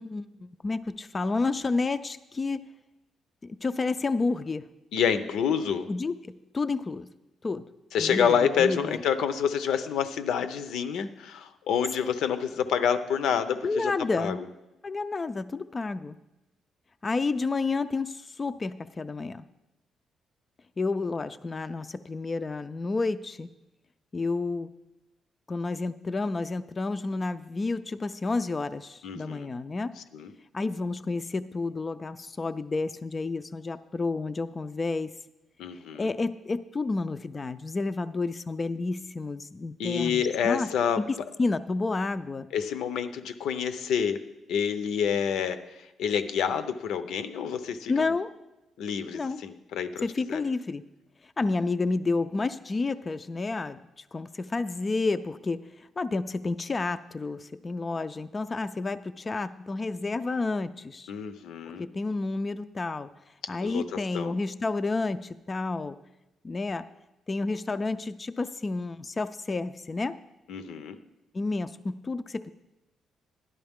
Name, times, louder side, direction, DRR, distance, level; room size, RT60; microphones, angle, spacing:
voice 1, 0.0-2.6 3.4-4.7 5.9-7.1 7.4-7.7 8.0-8.3 8.6-9.0 13.6-14.4 14.8-16.2 17.0-19.4 20.8-23.5 24.1-24.7 25.5-30.0 30.5-35.1 36.0-40.7 41.0-42.5 47.9-48.3 49.1-49.4 50.0-50.8 51.2-53.8 54.1-61.1 61.8-63.1 63.5-66.0 66.4-66.9 67.3-70.2 71.3-72.5, left 3 dB, 25° left, 12 dB, 0.3 m, -30 dB
voice 2, 4.9-5.9 7.9-13.9 14.2-14.4 29.0-29.5 30.1-30.3 35.6-36.0 39.8-41.0 42.5-44.2 44.5-48.1 48.8-50.4 51.4-51.5 61.1-61.9 63.6-64.4 70.5-71.0, left 7 dB, 90° left, 11 dB, 0.6 m, -28 dB
12.0 x 11.0 x 3.6 m, 0.97 s
cardioid pair, 140°, 0 cm